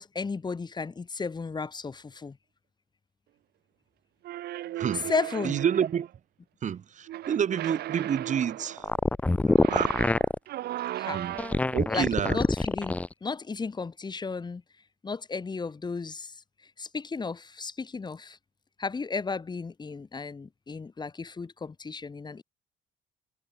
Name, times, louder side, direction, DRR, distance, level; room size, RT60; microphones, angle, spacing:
voice 1, 0.0-2.4 4.9-5.6 10.9-11.2 11.9-14.6 15.0-16.4 16.8-18.4 18.8-22.4, left 4 dB, 25° left, 6.8 m, -34 dB
sound 1, 4.2-6.1 7.1-8.9 9.5-11.8, right 14 dB, 70° right, 7.7 m, -36 dB
voice 2, 4.8-5.1 5.4-6.1 6.6-8.8 9.7-9.9 11.1-11.4 11.7-12.4, right 8 dB, 45° right, 6.6 m, -28 dB
sound 2, 8.8-10.4 11.3-13.1, left 2 dB, 10° left, 0.4 m, -25 dB
cardioid pair, 110°, 17 cm